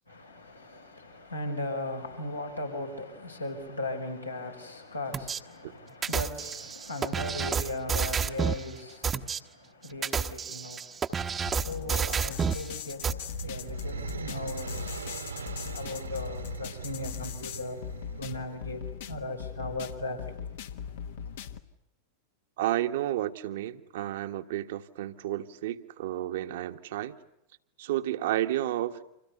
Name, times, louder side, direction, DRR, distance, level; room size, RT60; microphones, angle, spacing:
voice 1, 0.1-15.1 15.7-17.8 18.1-20.3 21.2-21.4, left 2 dB, 85° left, 5.3 m, -38 dB
sound 1, 5.1-5.4 6.0-8.6 9.0-9.4 9.9-12.6 13.0-13.1, right 6 dB, 20° right, 1.1 m, -30 dB
sound 2, 11.4-21.6, left 8 dB, 55° left, 1.4 m, -40 dB
sound 3, 12.8-18.9, right 5 dB, 80° right, 2.1 m, -40 dB
voice 2, 22.6-27.2 27.8-29.0, right 13 dB, 55° right, 1.4 m, -31 dB
29.5 x 27.0 x 6.9 m
figure-of-eight pair, 90°, 0 cm